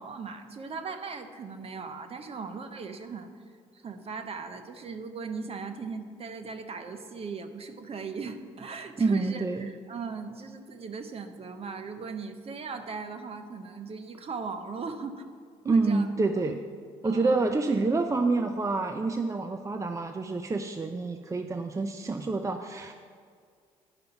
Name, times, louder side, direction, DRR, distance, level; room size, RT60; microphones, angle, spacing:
voice 1, 0.0-3.3 3.7-15.2 15.6-16.1 16.4-16.5 17.0-17.5, right 4 dB, 40° right, 8 dB, 1.0 m, -38 dB
voice 2, 9.0-9.7 15.7-16.6 17.0-22.9, right 3 dB, 20° right, 6 dB, 0.6 m, -27 dB
11.0 x 5.2 x 5.8 m, 2.1 s
hypercardioid pair, 55°, 15 cm